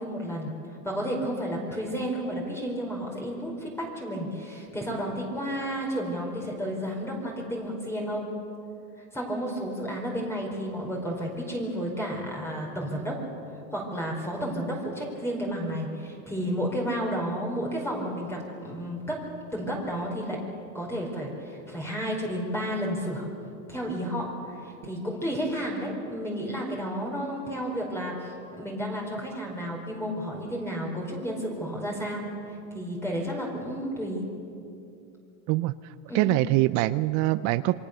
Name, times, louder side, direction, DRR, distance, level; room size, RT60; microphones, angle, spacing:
voice 1, 0.0-8.3 9.1-13.2 13.7-19.2 19.5-20.4 20.7-23.3 23.7-34.2 36.1-36.4, equal, 5° left, -2 dB, 4.7 m, -32 dB
voice 2, 36.1-37.7, right 18 dB, 45° right, 15 dB, 0.6 m, -23 dB
28.0 x 23.0 x 6.8 m, 2.7 s
supercardioid pair, 130°, 42 cm